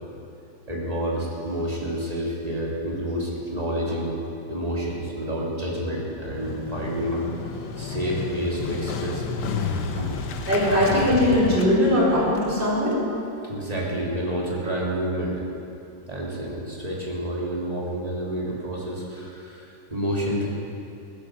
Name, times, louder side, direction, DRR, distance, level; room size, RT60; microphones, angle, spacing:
voice 1, 0.7-9.4 10.0-10.4 13.3-15.4 16.1-20.5, equal, 20° right, -4 dB, 3.0 m, -29 dB
Motorcycle, 6.2-13.0, left 5 dB, 90° left, 1.7 m, -31 dB
voice 2, 10.5-13.0, left 1 dB, 75° right, -9 dB, 5.2 m, -20 dB
16.0 x 10.5 x 7.6 m, 2.7 s
omnidirectional pair, 2.0 m